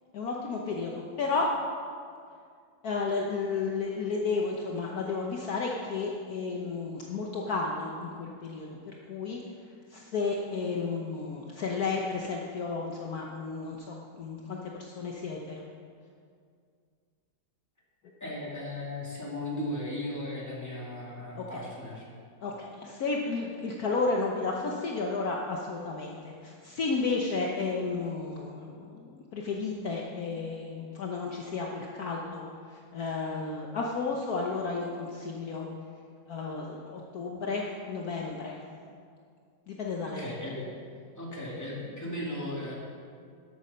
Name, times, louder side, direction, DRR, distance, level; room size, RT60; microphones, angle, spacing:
voice 1, 0.1-1.5 2.8-9.4 9.9-15.6 21.4-21.6 22.4-32.4 32.9-35.7 36.3-38.6 39.7-40.3, left 4 dB, 60° left, -1 dB, 1.3 m, -32 dB
voice 2, 18.2-22.1 40.0-40.8 41.2-42.7, left 1 dB, 10° left, -4 dB, 2.3 m, -36 dB
12.5 x 8.3 x 5.6 m, 2.2 s
omnidirectional pair, 1.9 m